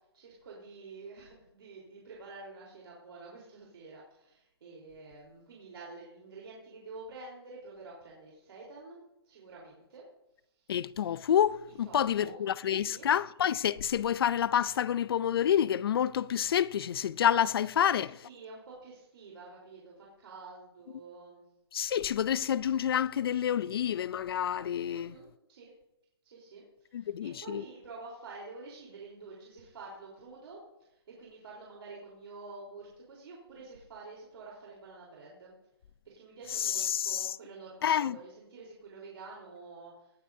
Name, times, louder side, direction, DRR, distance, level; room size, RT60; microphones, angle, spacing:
voice 1, 0.1-9.0 9.3-10.0 10.6-10.7 11.8-12.4 12.7-13.1 17.7-21.4 24.9-25.7 26.2-30.6 30.9-35.5 36.1-40.1, right 3 dB, 70° right, 3.9 m, -48 dB
voice 2, 10.7-18.1 21.7-25.2 26.9-27.6 36.5-37.4 37.8-38.2, left 9 dB, 60° left, 0.5 m, -28 dB
18.5 x 8.6 x 2.7 m
hypercardioid pair, 165°, 14 cm